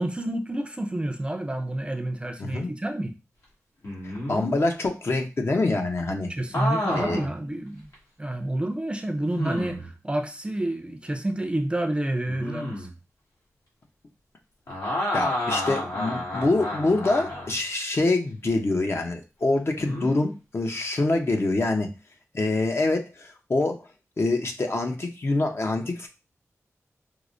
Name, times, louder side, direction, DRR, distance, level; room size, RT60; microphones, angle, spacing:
voice 1, 0.0-3.1 6.3-7.9 8.2-12.9, right 1 dB, 20° right, 0.5 m, -29 dB
voice 2, 2.4-2.7 4.3-6.3 6.9-7.2 15.1-21.9 22.3-23.8 24.2-26.1, left 2 dB, 50° left, 0.7 m, -25 dB
sound 1, 3.8-4.5 6.5-7.3 7.9-8.0 9.3-9.9 12.3-12.9 14.7-17.6 19.8-20.1, left 1 dB, 80° left, 1.5 m, -30 dB
4.6 x 2.0 x 2.5 m
wide cardioid pair, 70°, 5 cm